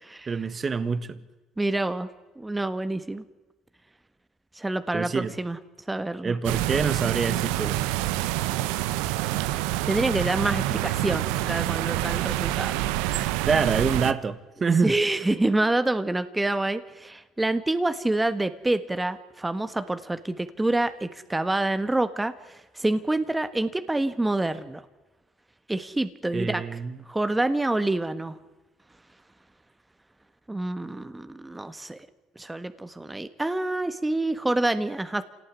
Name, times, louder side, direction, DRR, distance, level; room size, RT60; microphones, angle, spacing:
voice 1, 0.3-1.2 4.9-5.3 6.2-7.9 13.4-14.9 26.3-26.9, right 5 dB, 30° right, 1.6 m, -26 dB
voice 2, 1.6-2.1 2.4-3.2 4.5-5.6 5.9-6.4 9.5-12.8 13.1-13.4 14.8-24.8 25.7-26.6 27.1-28.4 30.5-32.1 32.3-35.2, right 2 dB, 10° right, 1.5 m, -27 dB
sound 1, 6.4-14.1, right 16 dB, 85° right, 0.9 m, -27 dB
26.5 x 18.0 x 9.7 m
supercardioid pair, 90°, 0 cm